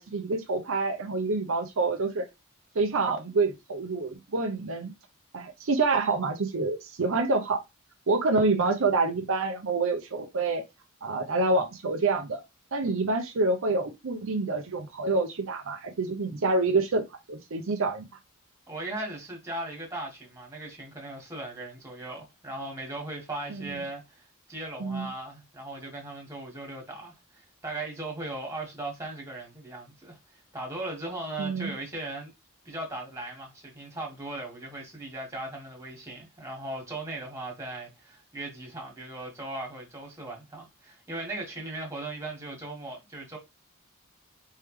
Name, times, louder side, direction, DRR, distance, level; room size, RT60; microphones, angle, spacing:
voice 1, 0.0-2.3 2.7-4.9 5.3-7.6 8.1-10.6 11.0-12.4 12.7-18.0 23.5-23.7 24.8-25.1 31.4-31.7, right 3 dB, 65° right, 0.7 m, -27 dB
voice 2, 18.7-24.2 24.5-30.2 30.5-32.3 32.6-43.4, right 2 dB, 15° right, 1.8 m, -38 dB
4.4 x 3.5 x 3.2 m
head